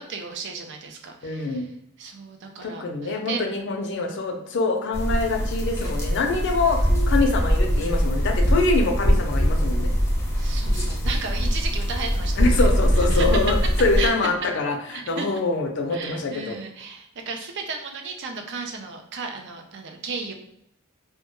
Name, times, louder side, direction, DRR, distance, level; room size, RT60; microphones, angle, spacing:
voice 1, 0.0-1.7 2.0-3.4 4.0-4.1 10.4-13.4 14.0-14.1 14.9-15.3 15.9-20.3, right 4 dB, 60° right, 3 dB, 0.4 m, -34 dB
voice 2, 1.2-1.7 2.6-6.8 7.1-9.9 12.4-14.8 15.1-16.6, left 3 dB, 60° left, 3 dB, 0.5 m, -24 dB
sound 1, 4.9-14.1, equal, 15° left, 0.6 m, -22 dB
2.2 x 2.1 x 2.9 m, 0.78 s
head